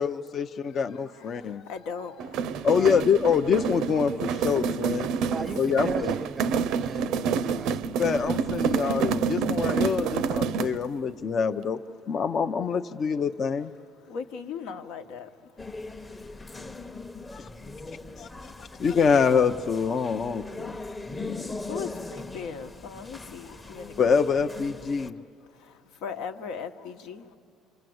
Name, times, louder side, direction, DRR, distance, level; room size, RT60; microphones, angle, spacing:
voice 1, 0.0-1.6 2.6-5.1 5.6-6.1 8.0-11.8 12.1-13.7 17.3-17.5 18.2-18.3 18.8-20.8 21.2-21.4 24.0-25.1, left 6 dB, 40° left, 0.6 m, -25 dB
voice 2, 1.1-2.7 14.1-15.3 21.7-24.0 24.3-24.4 25.5-27.4, left 6 dB, 80° left, 1.2 m, -38 dB
sound 1, 2.2-10.9, right 6 dB, 70° right, 0.6 m, -28 dB
voice 3, 2.5-3.1 5.2-8.2, right 3 dB, 20° right, 0.6 m, -39 dB
sound 2, 15.6-25.1, left 2 dB, 15° left, 0.9 m, -40 dB
28.5 x 25.0 x 7.8 m
cardioid pair, 125°, 0 cm